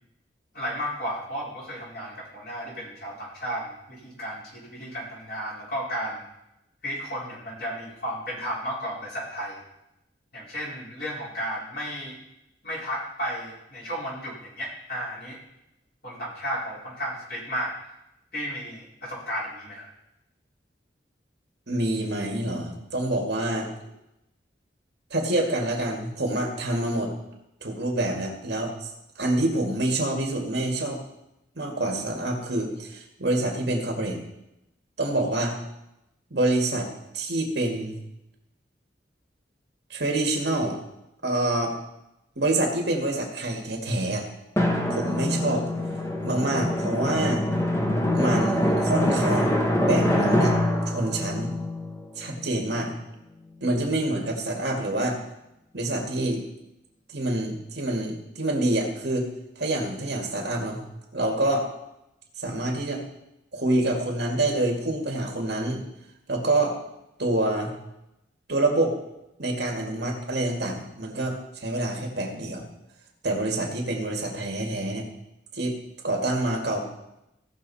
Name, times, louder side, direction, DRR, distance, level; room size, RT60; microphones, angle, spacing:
voice 1, 0.5-6.2 6.8-9.6 10.3-12.2 12.6-15.4 16.0-17.8 18.3-19.9, equal, 55° left, -6 dB, 4.7 m, -33 dB
voice 2, 21.7-23.7 25.1-27.1 27.6-28.9 29.2-31.0 31.6-34.2 35.0-35.6 36.3-36.9 37.1-38.0 39.9-40.8 41.2-41.8 42.4-44.3 44.9-45.7 46.2-47.4 48.1-50.6 50.9-51.5 52.2-52.9 53.6-55.2 55.7-56.4 57.1-59.3 59.6-60.8 61.1-61.7 62.4-63.0 63.5-65.8 66.3-66.8 67.2-67.7 68.5-68.9 69.4-72.7 73.2-75.1 75.5-75.7 76.0-76.9, right 1 dB, 70° right, 1 dB, 2.2 m, -26 dB
Drum, 44.6-52.8, left 1 dB, 15° left, 1.1 m, -25 dB
17.0 x 6.4 x 4.2 m, 0.87 s
head